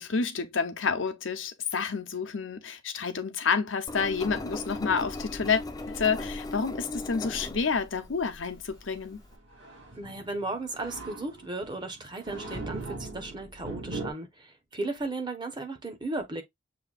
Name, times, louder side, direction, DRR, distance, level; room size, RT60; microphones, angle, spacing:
voice 1, 0.0-9.2, left 5 dB, 75° left, 0.8 m, -29 dB
Engine, 3.9-9.3, left 2 dB, 20° left, 0.5 m, -38 dB
sound 1, 4.9-14.1, right 2 dB, 65° right, 2.9 m, -42 dB
voice 2, 10.0-16.4, right 2 dB, 25° right, 1.0 m, -35 dB
6.8 x 2.8 x 2.4 m
head